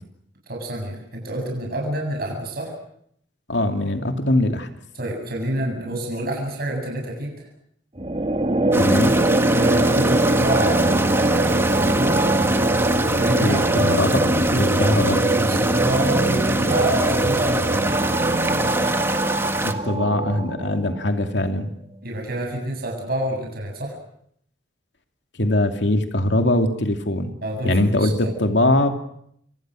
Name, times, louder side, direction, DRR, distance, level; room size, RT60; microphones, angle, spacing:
voice 1, 0.5-2.7 4.9-7.3 9.5-12.3 13.1-13.6 14.5-17.8 22.0-23.9 27.4-28.3, right 1 dB, 60° right, 0 dB, 7.6 m, -27 dB
voice 2, 3.5-4.7 8.7-9.1 13.4-15.2 19.6-21.7 25.4-27.3 27.6-28.9, left 1 dB, 75° left, 5 dB, 2.7 m, -21 dB
sound 1, 8.0-21.1, right 1 dB, 35° right, 2.3 m, -21 dB
sound 2, 8.7-19.7, right 2 dB, 15° right, 1.8 m, -26 dB
29.5 x 25.0 x 6.4 m, 0.69 s
head